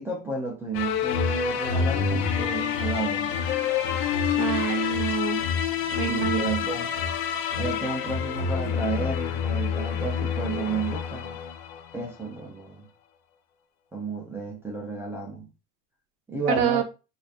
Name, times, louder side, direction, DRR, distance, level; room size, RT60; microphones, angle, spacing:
voice 1, 0.0-3.3 6.1-6.9 7.5-11.4 11.9-12.9 13.9-15.5 16.3-16.8, right 3 dB, 10° right, 0.5 m, -32 dB
sound 1, 0.7-12.1, left 7 dB, 55° left, 0.7 m, -27 dB
voice 2, 4.3-5.4 6.0-6.6 16.5-16.8, right 11 dB, 55° right, 0.8 m, -26 dB
4.7 x 2.6 x 2.4 m
cardioid pair, 175°, 30 cm